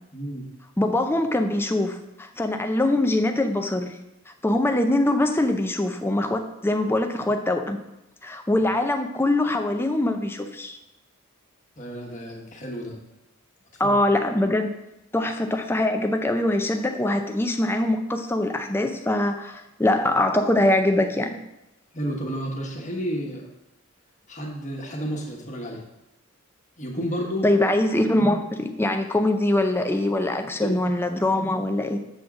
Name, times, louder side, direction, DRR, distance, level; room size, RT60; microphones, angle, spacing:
voice 1, 0.1-0.4 11.8-12.9 13.8-14.0 21.9-23.4 24.3-25.8 26.8-27.5 30.6-30.9, equal, 35° left, -1 dB, 1.3 m, -31 dB
voice 2, 0.8-4.0 4.4-7.8 8.2-10.8 13.8-14.8 15.1-21.4 27.4-32.0, left 1 dB, 10° left, 6 dB, 0.5 m, -23 dB
7.7 x 3.7 x 6.1 m, 0.92 s
head